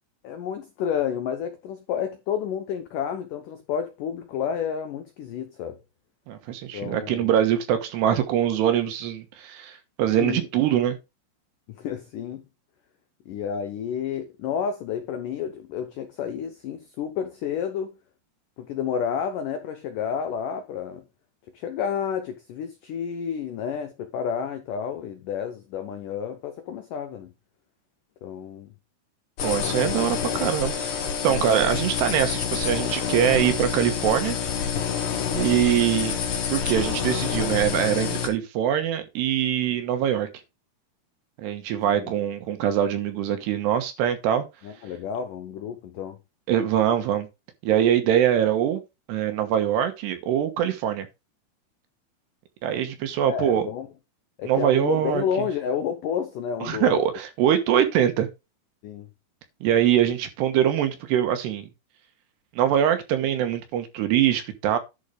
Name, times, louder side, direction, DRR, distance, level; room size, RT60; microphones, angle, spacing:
voice 1, 0.2-5.8 6.7-7.3 10.2-10.4 11.7-12.4 13.3-18.0 18.6-21.0 21.5-27.3 28.2-28.7 31.3-31.7 42.0-42.1 44.6-46.2 53.2-53.9 54.4-57.0 58.8-59.1, left 8 dB, 80° left, 1.9 m, -30 dB
voice 2, 6.3-11.0 29.4-30.9 31.2-34.4 35.3-36.2 36.5-40.3 41.4-44.4 46.5-47.3 47.6-48.8 49.1-51.1 52.6-53.7 54.4-55.2 56.6-58.3 59.6-61.7 62.6-64.8, right 10 dB, 75° right, 3.2 m, -23 dB
sound 1, 29.4-38.3, left 7 dB, 55° left, 2.8 m, -27 dB
11.0 x 4.4 x 5.1 m
omnidirectional pair, 5.1 m